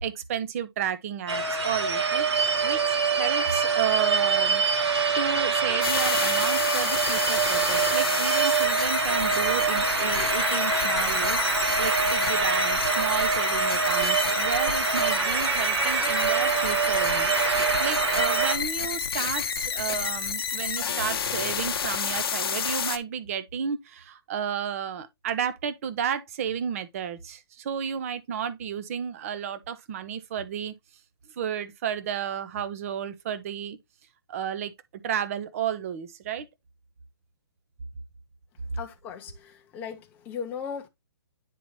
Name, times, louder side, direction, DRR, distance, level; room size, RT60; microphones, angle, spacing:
voice 1, 0.0-2.3 2.6-4.6 5.2-30.7 31.4-33.8 34.3-34.7 35.0-36.5, right 8 dB, 35° right, 0.8 m, -32 dB
sound 1, 1.3-18.6, right 5 dB, 85° right, 1.7 m, -25 dB
sound 2, 5.8-23.0, left 7 dB, 60° left, 0.9 m, -30 dB
voice 2, 38.8-40.9, left 7 dB, 10° left, 0.7 m, -37 dB
9.3 x 4.1 x 3.1 m
hypercardioid pair, 160°, 14 cm